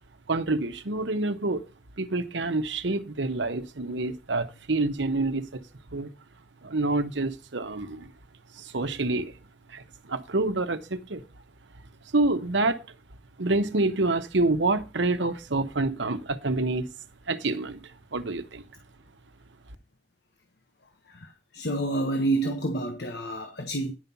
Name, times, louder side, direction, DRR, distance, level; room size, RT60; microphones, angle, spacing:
voice 1, 0.3-1.6 2.0-5.6 5.9-6.1 6.6-8.1 8.5-9.3 9.7-11.2 12.1-12.8 13.4-16.9 17.3-18.6, right 2 dB, 85° right, 1.0 m, -27 dB
voice 2, 21.1-23.9, right 2 dB, 65° left, 1.3 m, -29 dB
10.5 x 5.5 x 5.8 m
head